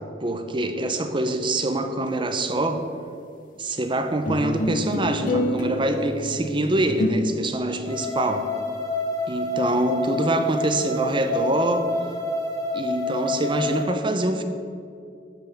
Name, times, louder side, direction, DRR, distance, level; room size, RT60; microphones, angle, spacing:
voice 1, 0.2-2.8 3.6-8.5 9.3-11.9 12.7-14.4, right 1 dB, 30° right, 7 dB, 0.8 m, -25 dB
sound 1, 4.2-7.1, left 1 dB, 50° left, 0.9 m, -27 dB
sound 2, 7.8-13.8, left 2 dB, 20° left, 1.7 m, -28 dB
12.0 x 5.6 x 6.9 m, 2.5 s
head